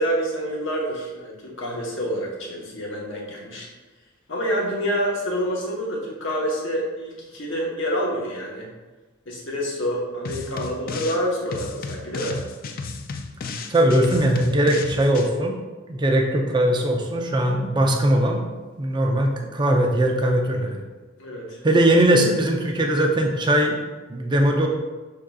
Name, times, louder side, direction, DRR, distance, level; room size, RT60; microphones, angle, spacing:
voice 1, 0.0-3.7 4.3-8.7 9.3-12.4 21.2-21.6, equal, 65° left, -2 dB, 1.0 m, -27 dB
sound 1, 10.2-11.2 11.5-15.3, left 4 dB, 45° left, 0.3 m, -33 dB
voice 2, 13.7-15.5 15.9-18.5 18.8-20.8 21.6-23.8 24.1-24.7, right 1 dB, 20° right, 1 dB, 0.5 m, -20 dB
6.1 x 3.7 x 2.3 m, 1.3 s
head